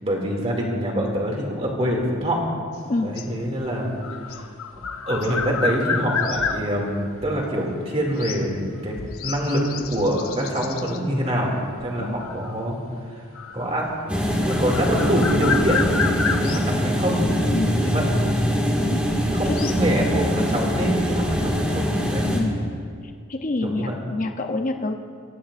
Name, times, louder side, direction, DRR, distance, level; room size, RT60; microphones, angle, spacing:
voice 1, 0.0-2.5 3.0-12.8 13.0-13.3 13.5-15.8 16.2-17.2 17.7-18.1 19.2-22.3 23.6-23.9, equal, 30° right, -1 dB, 2.4 m, -25 dB
sound 1, 2.7-7.3 8.2-8.5 8.9-11.0 11.8-12.7 13.4-13.9 14.3-16.8 17.6-17.7 19.0-19.9, left 5 dB, 80° left, 0.8 m, -30 dB
voice 2, 12.0-12.3 17.5-17.8 18.8-19.0 19.6-19.7 22.3-22.6 23.3-24.9, left 2 dB, 35° left, 5 dB, 0.6 m, -27 dB
sound 2, 14.1-22.4, equal, 5° right, 1.9 m, -23 dB
23.0 x 17.0 x 2.5 m, 2.2 s
head